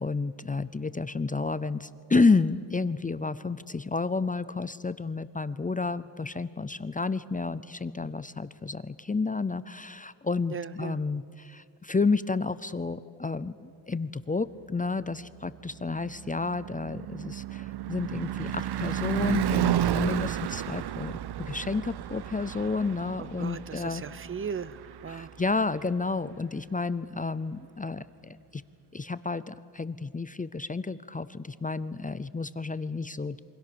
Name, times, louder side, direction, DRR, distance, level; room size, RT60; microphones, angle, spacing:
voice 1, 0.0-24.0 25.1-28.6 28.9-33.4, left 4 dB, 20° left, 15 dB, 0.5 m, -30 dB
voice 2, 10.5-11.0 23.2-25.3, right 6 dB, 30° right, 18 dB, 0.7 m, -37 dB
Car passing by / Truck / Engine, 15.5-25.8, right 12 dB, 75° right, 0.6 m, -32 dB
27.5 x 24.0 x 6.9 m, 2.3 s
wide cardioid pair, 125°, 40 cm